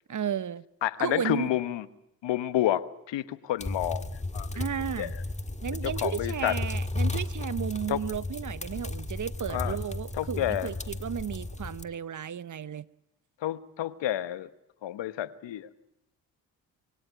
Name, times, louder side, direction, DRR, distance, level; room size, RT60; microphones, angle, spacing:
voice 1, 0.1-0.6 1.0-1.5 4.5-5.1 5.6-12.9, right 8 dB, 40° right, 0.9 m, -34 dB
voice 2, 0.8-1.9 2.2-4.6 5.0-5.2 5.8-6.6 7.9-8.0 9.5-9.8 10.1-10.7 13.4-14.5 14.8-15.7, left 13 dB, 75° left, 1.2 m, -30 dB
sound 1, 3.6-11.8, left 2 dB, 15° left, 1.6 m, -34 dB
23.5 x 17.0 x 9.4 m
supercardioid pair, 50°, 45 cm